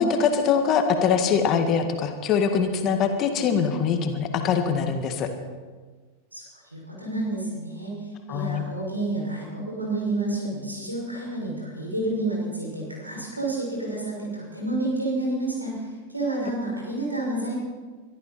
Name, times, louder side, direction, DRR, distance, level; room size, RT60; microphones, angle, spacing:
voice 1, 0.0-5.3 8.3-8.6, left 6 dB, 35° left, 6 dB, 1.8 m, -23 dB
voice 2, 6.7-17.5, right 2 dB, 85° right, -3 dB, 6.2 m, -29 dB
23.0 x 13.0 x 4.3 m, 1.4 s
figure-of-eight pair, 90°, 0 cm